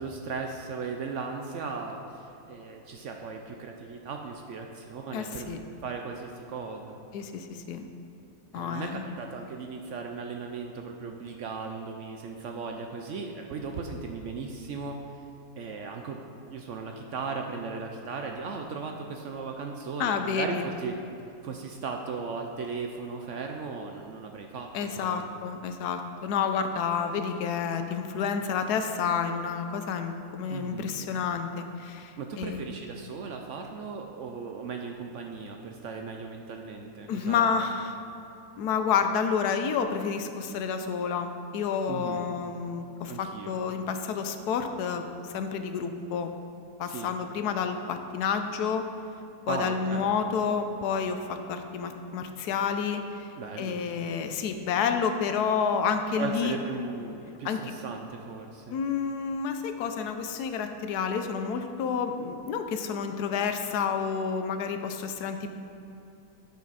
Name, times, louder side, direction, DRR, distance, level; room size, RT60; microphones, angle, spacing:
voice 1, 0.0-5.5 5.8-7.0 8.5-15.0 15.6-21.0 21.4-25.3 30.5-31.0 32.2-37.6 41.9-42.2 43.1-43.6 46.8-47.1 49.5-50.1 53.4-53.8 56.2-58.8, right 4 dB, 65° right, 3 dB, 0.8 m, -37 dB
voice 2, 5.1-5.6 7.1-7.9 8.5-9.0 20.0-20.7 24.7-32.6 37.1-38.0 38.6-45.0 45.3-46.3 46.8-48.9 49.5-53.3 53.6-56.6 57.4-57.7 58.7-65.5, left 6 dB, 80° left, 7 dB, 1.2 m, -29 dB
10.5 x 5.8 x 4.1 m, 2.8 s
omnidirectional pair, 1.7 m